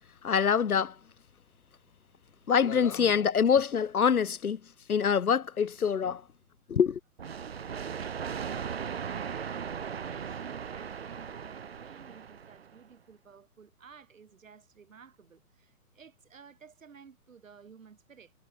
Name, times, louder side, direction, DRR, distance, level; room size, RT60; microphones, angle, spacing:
voice 1, 0.2-1.0 2.5-6.2 6.7-7.0, left 7 dB, 65° left, 1.6 m, -25 dB
sound 1, 7.2-12.8, right 7 dB, 40° right, 1.9 m, -38 dB
voice 2, 8.0-18.3, right 6 dB, 55° right, 6.6 m, -54 dB
hypercardioid pair, 175°, 46 cm